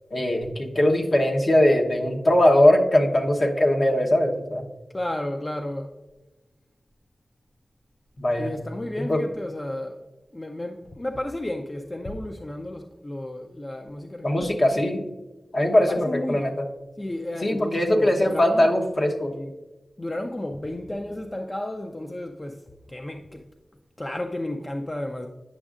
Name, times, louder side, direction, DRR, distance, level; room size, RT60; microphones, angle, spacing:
voice 1, 0.1-4.6 8.2-8.5 9.1-9.2 14.2-15.0 15.5-16.5 17.4-19.3, left 1 dB, 50° left, 2 dB, 1.0 m, -20 dB
voice 2, 4.9-6.0 8.4-10.0 10.3-14.8 15.6-16.5 17.0-18.7 19.2-19.5 20.0-23.4 24.0-25.3, left 1 dB, 30° left, 4 dB, 0.5 m, -33 dB
9.7 x 6.2 x 2.5 m, 1.1 s
cardioid pair, 50°, 0 cm